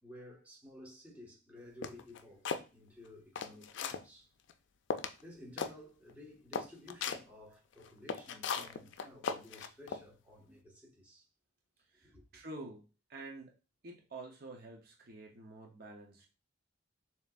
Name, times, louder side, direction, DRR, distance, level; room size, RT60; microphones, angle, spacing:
voice 1, 0.0-4.3 5.2-11.2 12.0-12.2, left 1 dB, 10° right, 1.4 m, -54 dB
sound 1, 1.8-2.6 3.1-4.0 4.5-4.6 4.9-5.2 5.6-5.7 6.1-6.2 6.5-7.2 7.8-10.0, left 6 dB, 70° left, 0.4 m, -37 dB
voice 2, 11.9-13.5 13.8-16.3, right 2 dB, 55° right, 0.8 m, -49 dB
6.9 x 2.9 x 2.4 m
head